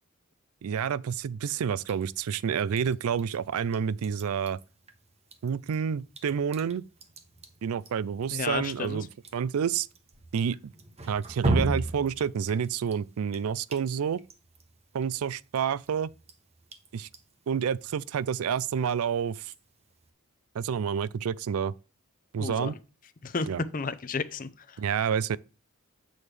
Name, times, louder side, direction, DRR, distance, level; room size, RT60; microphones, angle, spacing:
voice 1, 0.6-4.6 5.4-6.8 7.6-9.1 9.3-9.9 10.3-10.7 11.1-14.2 14.9-16.1 16.9-17.1 17.5-19.5 20.5-21.7 22.3-22.7 23.5-23.6 24.8-25.4, right 7 dB, 80° right, 0.4 m, -29 dB
Drip, 1.8-20.1, right 2 dB, 30° right, 0.9 m, -38 dB
voice 2, 8.3-9.0 22.4-22.7 23.2-23.5 23.7-24.8, left 4 dB, 40° left, 0.5 m, -32 dB
8.8 x 6.3 x 3.3 m
head